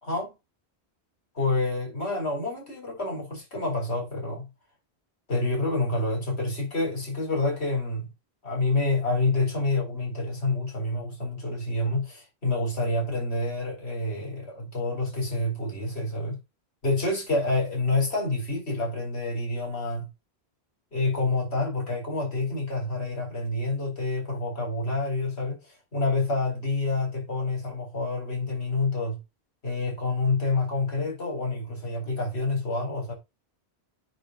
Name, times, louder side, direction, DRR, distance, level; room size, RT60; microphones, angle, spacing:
voice 1, 0.0-0.3 1.3-4.5 5.3-8.1 8.4-16.4 16.8-20.1 20.9-29.2 29.6-33.1, left 2 dB, 75° left, 4.3 m, -28 dB
9.0 x 3.8 x 5.4 m
omnidirectional pair, 1.1 m